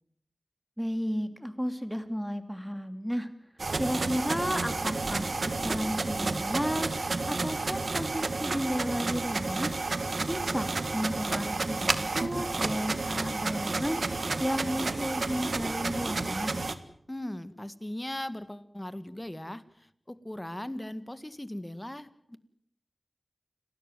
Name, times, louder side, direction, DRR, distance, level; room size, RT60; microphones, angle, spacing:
voice 1, 0.8-3.3 3.7-9.8 10.3-14.1 14.4-16.7, equal, ahead, 9 dB, 2.9 m, -33 dB
sound 1, 3.6-16.8, right 3 dB, 75° right, 1.6 m, -31 dB
voice 2, 17.1-22.4, left 1 dB, 20° left, 13 dB, 1.8 m, -39 dB
29.5 x 13.0 x 9.3 m, 0.68 s
wide cardioid pair, 45°, 0 cm